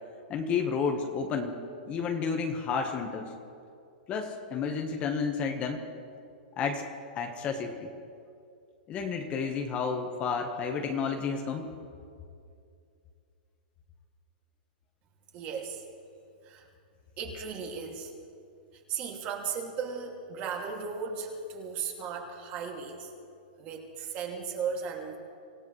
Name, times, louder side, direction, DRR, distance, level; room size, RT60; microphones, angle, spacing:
voice 1, 0.3-1.5 1.9-3.3 4.1-5.9 6.6-6.9 7.1-7.9 8.9-11.7, left 5 dB, 25° left, 4 dB, 1.2 m, -31 dB
voice 2, 15.3-15.8 16.4-16.7 17.2-18.1 18.9-23.1 23.6-25.2, right 6 dB, 30° right, 1 dB, 2.4 m, -36 dB
25.5 x 16.0 x 3.2 m, 2.4 s
hypercardioid pair, 150°, 5 cm